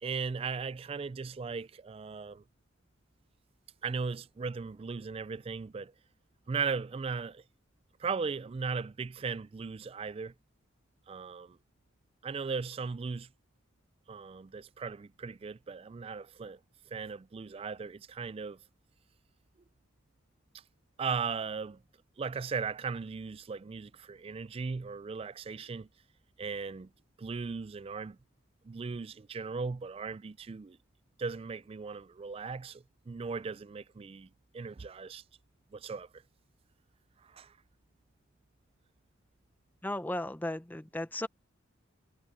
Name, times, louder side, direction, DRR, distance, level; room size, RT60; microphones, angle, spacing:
voice 1, 0.0-2.4 3.8-5.9 6.5-7.4 8.0-10.3 11.1-11.6 12.2-13.3 14.1-16.6 16.9-18.6 21.0-21.8 22.2-25.9 26.4-26.9 27.2-28.2 28.6-30.8 31.2-35.2 35.7-36.1 37.2-37.5, right 5 dB, 30° right, 0.3 m, -37 dB
voice 2, 39.8-41.3, left 1 dB, 10° left, 0.7 m, -35 dB
head